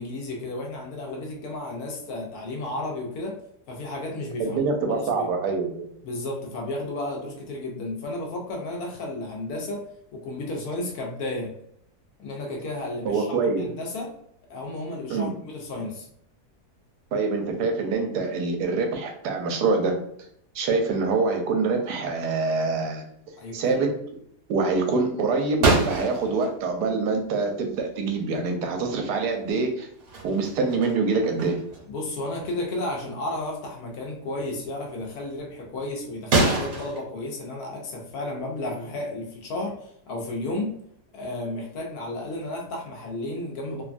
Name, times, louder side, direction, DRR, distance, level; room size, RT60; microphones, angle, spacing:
voice 1, 0.0-3.4 3.7-5.3 6.0-9.9 10.1-11.5 12.2-14.1 14.5-16.1 23.4-23.9 31.9-40.7 41.1-43.8, left 2 dB, 70° left, 0 dB, 1.1 m, -33 dB
voice 2, 4.4-5.9 13.0-13.6 15.1-15.3 17.1-20.0 20.5-23.0 23.5-23.9 24.5-29.9 30.2-31.6, right 4 dB, 80° right, 4 dB, 1.1 m, -25 dB
sound 1, 25.6-26.5 28.3-28.4 28.9-29.6 30.0-31.9 32.3-32.5 33.1-33.2 36.3-37.0, right 2 dB, 65° right, 1.3 m, -26 dB
3.0 x 2.2 x 2.4 m, 0.70 s
omnidirectional pair, 1.7 m